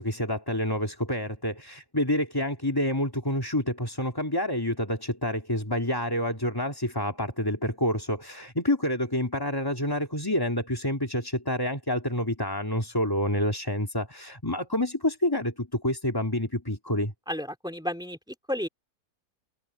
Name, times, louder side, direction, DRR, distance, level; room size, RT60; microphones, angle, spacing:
voice 1, 0.0-17.1, left 1 dB, 15° left, 2.6 m, -28 dB
voice 2, 17.3-18.7, equal, 5° right, 2.9 m, -32 dB
omnidirectional pair, 1.6 m